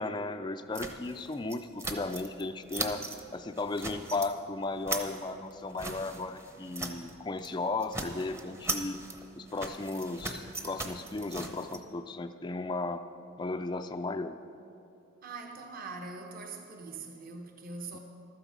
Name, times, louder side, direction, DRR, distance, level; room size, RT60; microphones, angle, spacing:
voice 1, 0.0-3.0 3.3-9.0 9.4-13.0 13.4-14.4, left 3 dB, 20° left, 8 dB, 0.4 m, -35 dB
sound 1, 0.7-2.4 2.7-3.2 3.6-4.3 4.6-7.1 7.4-7.6 7.8-11.8, right 2 dB, 15° right, 0.8 m, -39 dB
voice 2, 15.2-18.0, right 3 dB, 40° right, 3 dB, 1.0 m, -42 dB
15.0 x 12.5 x 5.2 m, 2.9 s
head